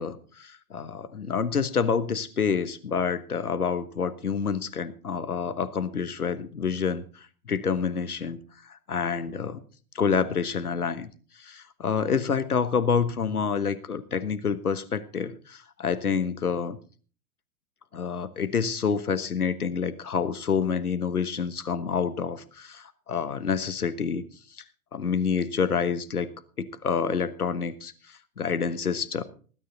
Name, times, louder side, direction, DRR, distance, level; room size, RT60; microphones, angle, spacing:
voice 1, 0.0-8.4 8.7-9.6 9.9-11.1 11.4-16.8 17.9-24.2 24.9-26.3 26.6-27.9 28.4-29.2, left 6 dB, 75° left, 13 dB, 1.3 m, -28 dB
19.5 x 9.5 x 4.0 m, 0.41 s
figure-of-eight pair, 110°, 45 cm